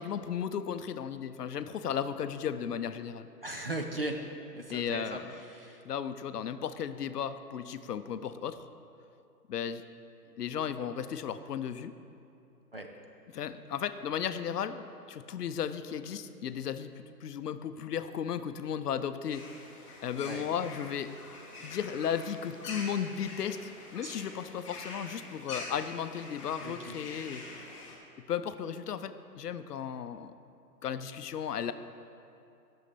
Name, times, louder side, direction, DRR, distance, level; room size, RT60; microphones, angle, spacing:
voice 1, 0.0-3.3 4.7-5.4 5.8-8.7 9.5-9.8 10.4-11.9 13.3-19.4 20.0-21.1 21.6-27.4 28.3-30.3 30.8-31.7, left 8 dB, 70° left, 11 dB, 0.6 m, -35 dB
voice 2, 3.4-4.2 4.5-5.2 5.5-5.8 12.7-12.9 20.2-20.4 24.0-24.2 26.6-27.0, right 1 dB, 40° right, 3 dB, 0.4 m, -37 dB
sound 1, 19.3-28.0, left 3 dB, 20° left, 0.8 m, -45 dB
9.7 x 6.5 x 4.2 m, 2.7 s
hypercardioid pair, 150°, 49 cm